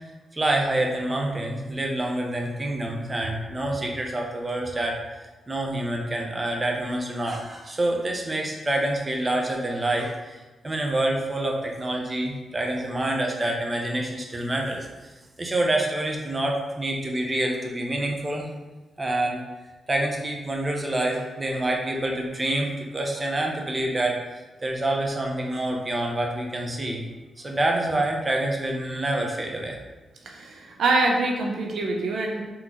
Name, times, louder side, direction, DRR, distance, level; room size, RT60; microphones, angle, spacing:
voice 1, 0.3-14.9 15.4-18.5 19.0-19.4 19.9-24.2 24.6-27.0 27.4-29.8, right 1 dB, 25° right, 0 dB, 0.7 m, -27 dB
voice 2, 30.2-32.5, right 2 dB, 80° right, 1 dB, 0.5 m, -25 dB
3.8 x 2.9 x 3.7 m, 1.2 s
cardioid pair, 80°, 0 cm